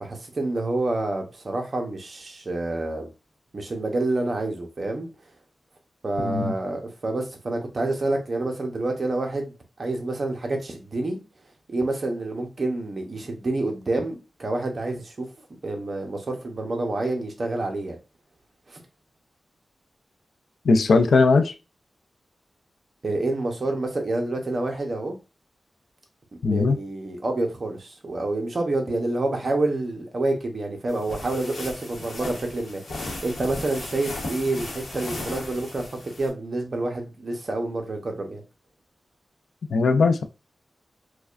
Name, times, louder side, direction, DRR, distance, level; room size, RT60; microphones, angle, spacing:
voice 1, 0.0-3.1 3.5-5.1 6.0-11.2 11.7-18.0 18.7-18.8 23.0-25.2 26.4-35.9 36.2-38.4, right 2 dB, 40° right, 0.7 m, -28 dB
voice 2, 6.2-6.5 20.6-21.5 26.4-26.8 39.7-40.2, left 4 dB, 85° left, 0.4 m, -19 dB
sound 1, 30.9-36.3, left 2 dB, 65° left, 1.0 m, -36 dB
4.7 x 2.2 x 2.4 m
wide cardioid pair, 180°, 0 cm